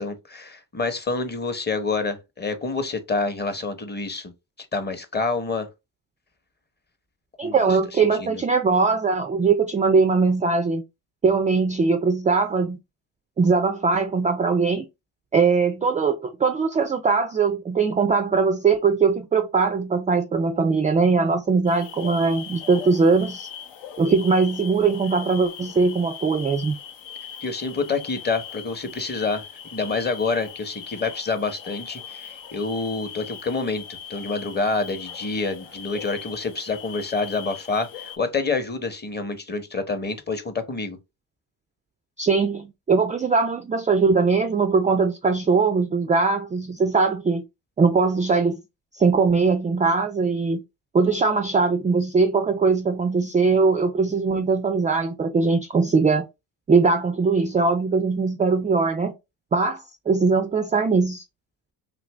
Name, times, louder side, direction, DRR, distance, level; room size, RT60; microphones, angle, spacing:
voice 1, 0.0-4.3 4.6-5.7 7.4-7.6 7.9-8.4 27.4-29.4 29.7-33.8 34.1-41.0, left 4 dB, 25° left, 0.8 m, -27 dB
voice 2, 7.4-10.8 11.2-12.8 13.4-14.9 15.3-23.5 24.0-26.8 42.2-47.4 47.8-48.6 48.9-50.6 50.9-56.3 56.7-59.1 59.5-61.2, right 4 dB, 20° right, 0.3 m, -21 dB
sound 1, 21.7-38.2, left 8 dB, 75° left, 0.7 m, -40 dB
2.7 x 2.5 x 3.2 m
supercardioid pair, 70°, 43 cm